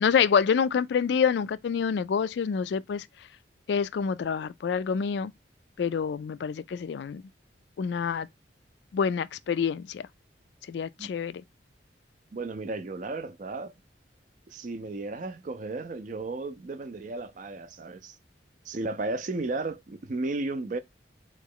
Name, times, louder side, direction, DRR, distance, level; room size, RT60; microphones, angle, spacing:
voice 1, 0.0-3.1 3.7-5.3 5.8-7.2 7.8-8.3 8.9-10.1 10.7-11.4, left 6 dB, 65° left, 0.3 m, -27 dB
voice 2, 12.3-13.7 14.5-18.2 18.6-20.8, right 3 dB, 45° right, 0.4 m, -34 dB
3.8 x 3.0 x 3.7 m
head